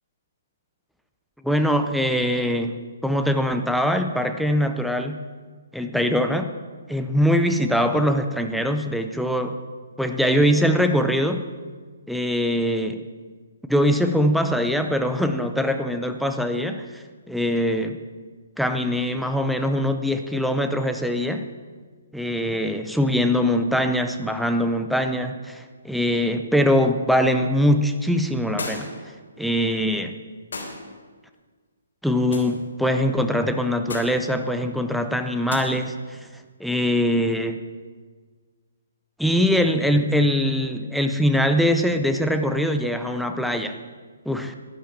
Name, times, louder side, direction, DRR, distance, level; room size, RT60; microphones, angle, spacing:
voice 1, 1.4-5.2 5.7-6.5 6.9-9.6 10.0-11.4 12.1-13.0 13.7-18.0 18.6-21.5 22.1-28.9 29.4-30.2 32.0-36.2 36.6-37.6 39.2-43.8 44.3-44.6, equal, ahead, 6 dB, 0.5 m, -22 dB
sound 1, 28.6-29.1 30.5-30.9 32.3-32.6 33.9-34.2 35.5-35.6, left 3 dB, 75° left, 3.4 m, -33 dB
11.5 x 11.5 x 7.3 m, 1.5 s
hypercardioid pair, 170°, 0 cm